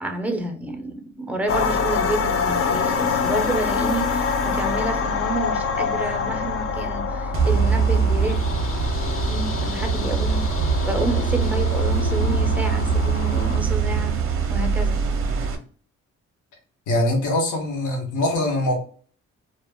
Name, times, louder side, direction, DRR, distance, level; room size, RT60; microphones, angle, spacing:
voice 1, 0.0-8.4 9.3-10.4 10.8-14.2 14.5-15.0, right 1 dB, 5° right, 5 dB, 0.5 m, -29 dB
sound 1, 1.5-13.6, left 5 dB, 50° left, 0.5 m, -26 dB
sound 2, 7.3-15.6, right 5 dB, 45° right, 0.5 m, -22 dB
voice 2, 16.9-18.8, left 1 dB, 80° left, 1 dB, 0.9 m, -22 dB
2.2 x 2.0 x 3.4 m, 0.43 s
cardioid pair, 90°, 30 cm